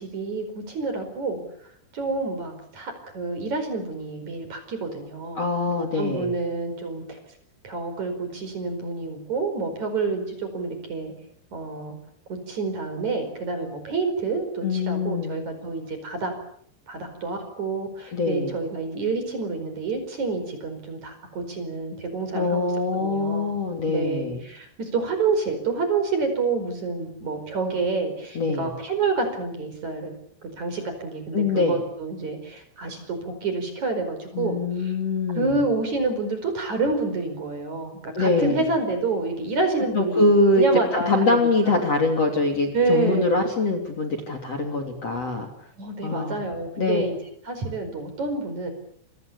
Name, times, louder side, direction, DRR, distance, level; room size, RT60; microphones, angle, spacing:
voice 1, 0.0-1.4 1.9-7.2 7.6-11.1 11.5-12.0 12.5-16.3 16.9-23.5 23.9-30.1 30.6-34.9 35.4-41.8 42.7-43.3 45.8-47.2 47.5-48.7, right 3 dB, 40° right, 7 dB, 5.8 m, -28 dB
voice 2, 5.4-6.3 14.6-15.4 18.1-18.5 22.3-24.4 28.4-28.7 31.3-31.8 34.3-35.5 38.1-38.6 39.9-40.7 41.1-45.5 46.0-46.4 46.8-47.0, left 3 dB, 35° left, 6 dB, 3.5 m, -23 dB
28.5 x 25.0 x 7.0 m, 0.67 s
omnidirectional pair, 5.5 m